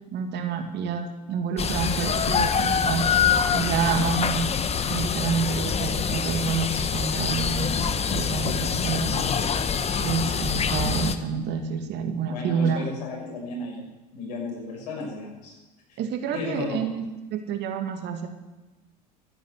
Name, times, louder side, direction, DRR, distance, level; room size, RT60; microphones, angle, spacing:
voice 1, 0.1-3.1 3.5-4.5 4.9-7.8 8.1-9.2 10.0-12.9 16.0-18.3, right 6 dB, 55° right, 6 dB, 2.4 m, -28 dB
sound 1, 1.6-11.2, left 6 dB, 30° left, 1.2 m, -25 dB
voice 2, 12.3-13.9 14.1-15.5 15.9-16.0 16.3-16.8, left 2 dB, 75° left, 0 dB, 6.3 m, -34 dB
13.5 x 10.5 x 8.3 m, 1.1 s
hypercardioid pair, 75°, 21 cm